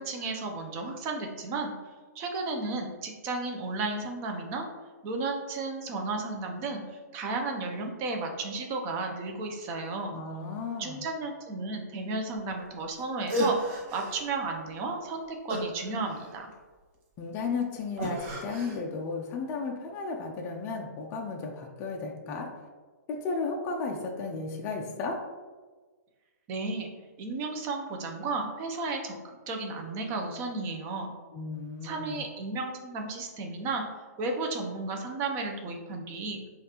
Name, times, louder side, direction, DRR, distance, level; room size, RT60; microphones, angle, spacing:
voice 1, 0.0-1.7 2.2-4.7 5.0-10.1 10.8-16.5 26.5-26.9 27.2-31.1 31.8-33.8 34.2-36.4, right 3 dB, 25° right, 3 dB, 0.5 m, -33 dB
voice 2, 10.1-11.0 17.2-22.5 23.1-25.2 31.3-32.2, left 4 dB, 20° left, 0 dB, 0.4 m, -34 dB
sound 1, 13.0-13.1 13.3-14.3 15.5-16.5 18.0-18.8, right 1 dB, 40° right, 0.9 m, -32 dB
5.1 x 2.4 x 2.9 m, 1.4 s
hypercardioid pair, 150°, 9 cm